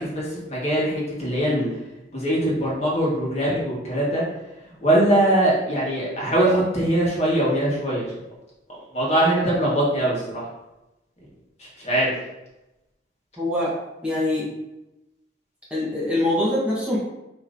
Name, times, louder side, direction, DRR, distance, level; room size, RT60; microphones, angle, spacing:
voice 1, 0.0-1.7 2.1-4.2 4.8-8.0 8.7-10.5 11.6-12.1, right 1 dB, 35° left, -5 dB, 1.4 m, -22 dB
voice 2, 13.4-13.7 14.0-14.5 15.7-17.0, left 1 dB, 5° right, -8 dB, 1.0 m, -23 dB
6.4 x 3.1 x 2.6 m, 0.95 s
head